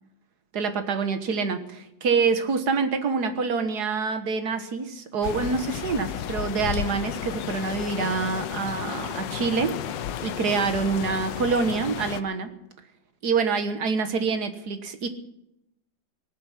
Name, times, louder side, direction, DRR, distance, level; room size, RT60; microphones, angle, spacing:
voice 1, 0.5-12.5 13.2-15.1, right 5 dB, 60° right, 8 dB, 1.8 m, -26 dB
sound 1, 5.2-12.2, left 10 dB, 75° left, 1.4 m, -33 dB
18.5 x 7.8 x 9.7 m, 0.85 s
omnidirectional pair, 2.1 m